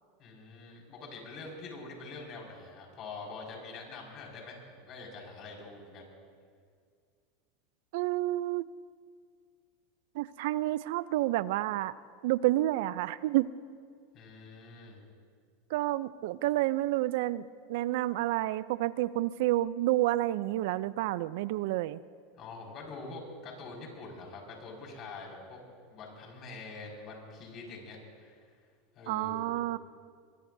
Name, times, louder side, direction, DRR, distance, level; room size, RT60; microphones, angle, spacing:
voice 1, 0.2-6.1 14.1-15.0 22.3-25.6 25.8-28.5 29.0-29.6, left 3 dB, 45° left, -1 dB, 5.4 m, -45 dB
voice 2, 7.9-8.7 10.1-11.9 12.2-13.5 15.7-22.0 29.1-29.8, right 16 dB, 70° right, 17 dB, 0.4 m, -29 dB
23.0 x 22.5 x 2.7 m, 2.1 s
supercardioid pair, 130°, 0 cm